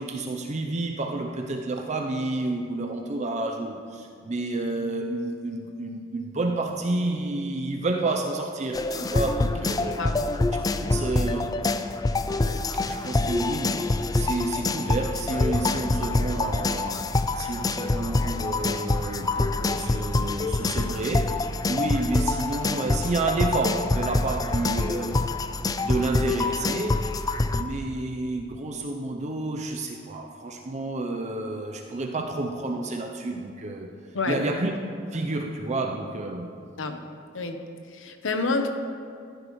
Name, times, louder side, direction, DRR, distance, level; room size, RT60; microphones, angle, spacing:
voice 1, 0.0-10.0 10.8-11.5 12.7-25.2 25.8-27.2 27.5-33.9 34.3-34.7 35.1-36.6, right 2 dB, 35° right, 2 dB, 0.6 m, -30 dB
sound 1, 8.7-27.6, left 2 dB, 20° left, 0.3 m, -26 dB
voice 2, 9.8-10.2 10.8-10.9 34.1-34.5 36.8-37.0 37.3-37.6 37.9-38.7, left 3 dB, 80° left, 6 dB, 0.9 m, -29 dB
14.5 x 9.3 x 3.1 m, 2.4 s
head